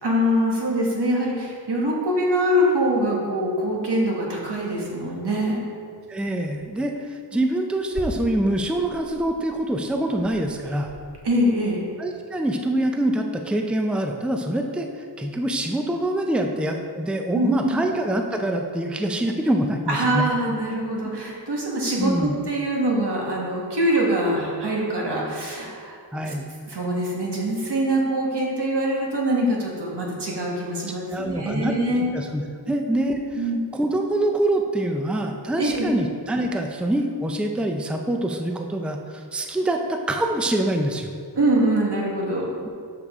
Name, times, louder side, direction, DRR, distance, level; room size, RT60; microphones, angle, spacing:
voice 1, 0.0-5.6 11.2-11.8 17.3-17.8 19.9-26.0 26.2-26.3 26.7-32.1 32.6-32.8 33.3-33.6 35.6-35.9 41.3-42.7, right 1 dB, 80° right, -3 dB, 1.5 m, -24 dB
sound 1, 4.7-5.2 5.9-6.1 6.5-6.7 7.3-11.0, right 1 dB, 45° right, 1.0 m, -40 dB
voice 2, 6.1-10.9 12.0-20.2 21.0-21.1 22.0-22.3 26.1-26.5 31.1-33.4 33.7-41.1, right 1 dB, 5° right, 3 dB, 0.5 m, -25 dB
6.9 x 6.6 x 3.6 m, 2.2 s
wide cardioid pair, 70°, 40 cm